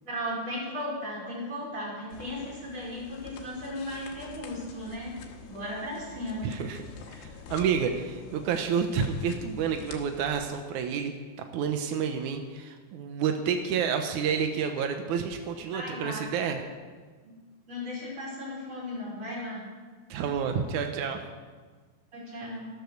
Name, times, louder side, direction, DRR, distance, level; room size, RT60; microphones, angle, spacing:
voice 1, 0.0-6.5 15.7-16.3 17.2-17.4 17.7-19.6 22.1-22.7, left 1 dB, 30° right, -5 dB, 5.5 m, -36 dB
sound 1, 2.1-10.6, left 5 dB, 80° left, 3.3 m, -46 dB
voice 2, 6.4-6.8 7.1-11.1 11.5-16.6 20.1-21.2, right 7 dB, 80° right, 6 dB, 1.7 m, -29 dB
14.0 x 12.0 x 6.5 m, 1.4 s
omnidirectional pair, 4.8 m